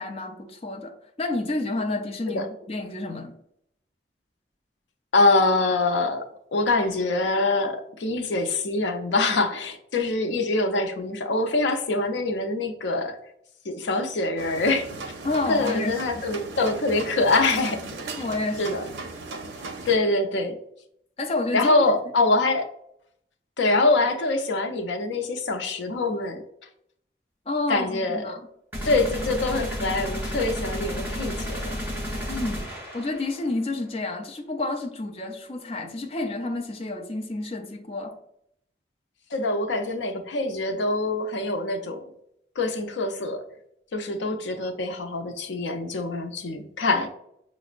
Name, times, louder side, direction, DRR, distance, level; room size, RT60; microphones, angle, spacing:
voice 1, 0.0-3.3 15.2-16.2 18.2-18.9 21.2-21.9 27.5-28.5 32.3-38.2, left 2 dB, 35° left, 0.4 m, -30 dB
voice 2, 5.1-13.2 13.7-14.9 15.5-17.9 18.6-18.9 19.9-20.6 21.5-22.7 23.6-26.4 27.7-28.3 28.8-31.7 39.3-42.0 42.6-43.4 43.9-47.1, left 2 dB, 90° left, 0.5 m, -24 dB
sound 1, 14.4-20.0, right 3 dB, 85° right, 0.5 m, -37 dB
sound 2, 28.7-33.5, equal, 10° right, 0.8 m, -32 dB
5.8 x 2.0 x 2.4 m
head